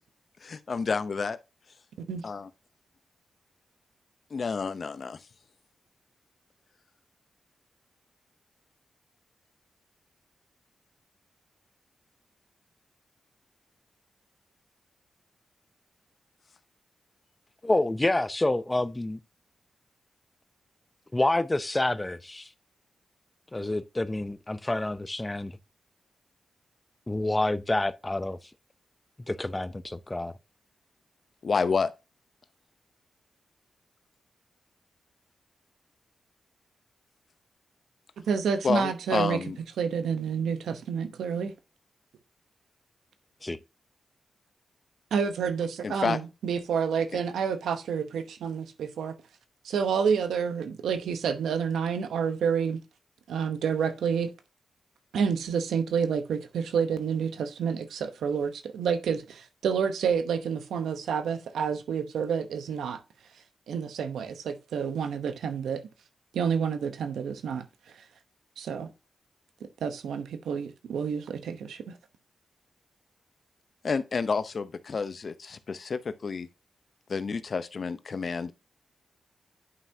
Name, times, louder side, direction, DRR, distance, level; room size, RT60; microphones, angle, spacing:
voice 1, 0.4-1.4 2.2-2.5 4.3-5.2 31.4-31.9 38.6-39.6 45.8-46.2 73.8-76.5 77.1-78.5, left 5 dB, 60° left, 0.7 m, -29 dB
voice 2, 17.6-19.2 21.1-22.5 23.5-25.5 27.1-28.4 29.3-30.3 43.4-43.6, left 2 dB, 25° left, 0.6 m, -28 dB
voice 3, 38.3-39.4 39.8-41.5 45.1-49.1 49.6-52.8 53.3-54.3 55.1-63.0 63.7-65.8 66.3-67.6 67.9-68.0 68.6-68.9 69.8-72.0, right 6 dB, 85° right, 0.9 m, -29 dB
9.7 x 5.6 x 2.7 m
supercardioid pair, 45°, 0 cm